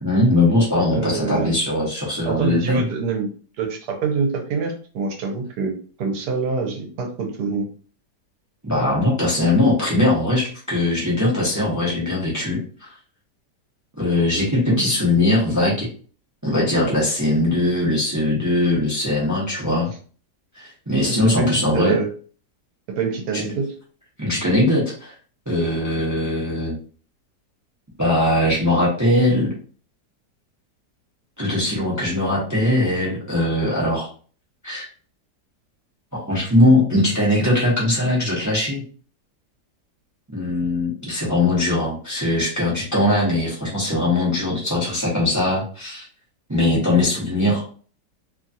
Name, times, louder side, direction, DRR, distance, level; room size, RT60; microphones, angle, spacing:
voice 1, 0.0-2.9 8.6-12.9 14.0-15.9 16.4-19.9 20.5-22.0 24.2-25.1 25.5-26.7 28.0-29.5 31.4-34.1 34.6-34.8 36.3-38.8 40.3-46.0 46.5-47.6, left 1 dB, 25° right, -5 dB, 0.3 m, -20 dB
voice 2, 0.9-1.5 2.3-3.3 3.6-5.7 6.0-7.7 14.7-14.8 21.1-22.1 22.9-23.7, right 4 dB, 75° right, 3 dB, 1.2 m, -25 dB
2.9 x 2.3 x 2.6 m, 0.42 s
omnidirectional pair, 1.8 m